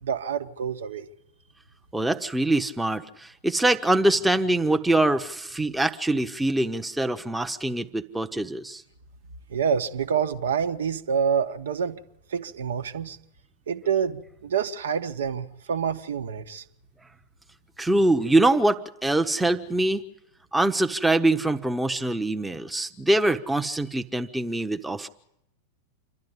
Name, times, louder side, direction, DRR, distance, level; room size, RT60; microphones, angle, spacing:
voice 1, 0.0-1.0 9.5-12.0 12.3-13.2 13.7-16.6, right 7 dB, 65° right, 1.4 m, -27 dB
voice 2, 1.9-8.8 17.8-20.0 20.5-25.1, right 2 dB, 5° right, 1.0 m, -24 dB
27.5 x 12.0 x 9.8 m
figure-of-eight pair, 90°, 0 cm